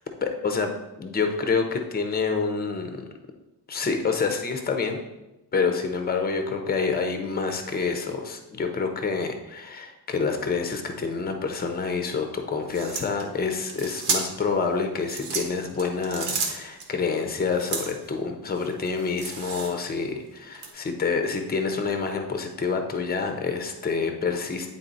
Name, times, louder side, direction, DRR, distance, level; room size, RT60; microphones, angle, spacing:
voice 1, 0.2-0.7 1.0-3.1 3.7-5.0 5.5-24.7, left 5 dB, 20° left, 5 dB, 0.7 m, -27 dB
sound 1, 12.7-14.5 15.0-16.9 17.6-18.1 18.6-19.9 20.5-20.7, right 4 dB, 85° right, 1.4 m, -32 dB
8.8 x 3.9 x 4.0 m, 0.97 s
cardioid pair, 140°, 43 cm